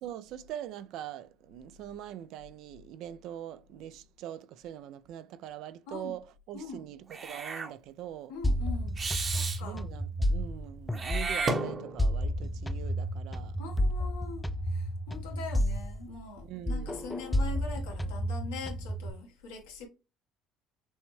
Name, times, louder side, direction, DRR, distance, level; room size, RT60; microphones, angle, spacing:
voice 1, 0.0-8.3 9.6-13.6 16.4-17.2, right 11 dB, 70° right, 0.4 m, -43 dB
voice 2, 6.5-6.8 8.3-9.0 9.3-9.8 13.6-19.9, left 4 dB, 90° left, 1.5 m, -42 dB
Meow / Hiss, 7.1-7.7 9.0-9.6 10.9-12.2, right 3 dB, 35° right, 0.9 m, -33 dB
sound 1, 8.4-11.5 12.0-16.4 16.7-19.1, equal, 10° left, 0.4 m, -31 dB
6.2 x 2.2 x 3.2 m
supercardioid pair, 80°, 0 cm